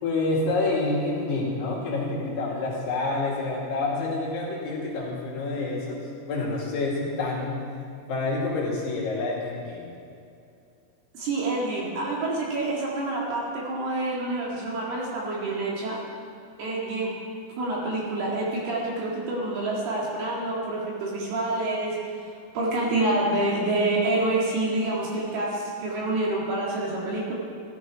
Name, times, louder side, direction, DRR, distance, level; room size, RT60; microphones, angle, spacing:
voice 1, 0.0-6.0 6.3-7.6 8.1-9.9, left 3 dB, 60° left, -5 dB, 4.0 m, -28 dB
voice 2, 11.1-16.0 16.6-17.2 17.6-22.0 22.5-27.3, right 2 dB, 60° right, -4 dB, 3.6 m, -27 dB
15.0 x 12.0 x 4.8 m, 2.6 s
omnidirectional pair, 5.6 m